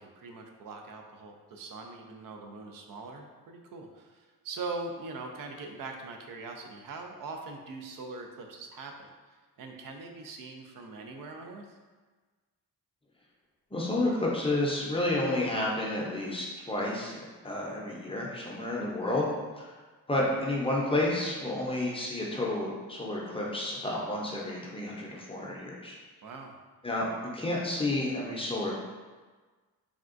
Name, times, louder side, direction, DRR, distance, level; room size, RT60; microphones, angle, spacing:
voice 1, 0.0-9.1 9.6-11.8 20.3-20.4 26.2-26.6, right 3 dB, 65° right, 3 dB, 0.5 m, -42 dB
voice 2, 13.7-17.2 17.4-19.2 19.6-19.7 20.1-26.0 26.8-27.1 27.3-28.7, left 1 dB, 15° left, -4 dB, 0.6 m, -30 dB
3.5 x 2.3 x 2.5 m, 1.4 s
cardioid pair, 95°, 35 cm